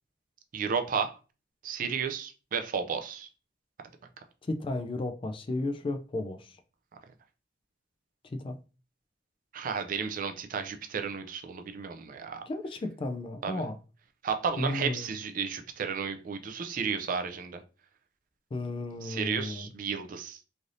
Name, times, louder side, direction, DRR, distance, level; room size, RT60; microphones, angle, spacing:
voice 1, 0.5-1.2 1.6-3.3 9.5-12.4 13.4-13.6 14.2-17.6 19.0-20.4, right 6 dB, 50° right, 0.4 m, -33 dB
voice 2, 4.4-6.6 8.2-8.6 12.5-13.8 14.6-15.1 18.5-19.7, left 2 dB, 30° left, 0.3 m, -34 dB
3.2 x 2.6 x 2.5 m
head